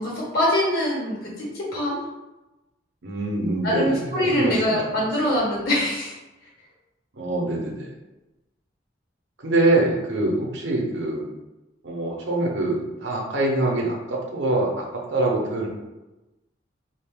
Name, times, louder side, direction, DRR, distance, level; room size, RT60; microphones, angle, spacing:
voice 1, 0.0-2.0 3.6-6.2, left 1 dB, 55° left, -6 dB, 1.4 m, -23 dB
voice 2, 3.0-4.8 7.2-7.9 9.4-11.2 11.8-15.7, right 2 dB, 70° right, -1 dB, 0.7 m, -24 dB
2.6 x 2.4 x 3.4 m, 1.0 s
head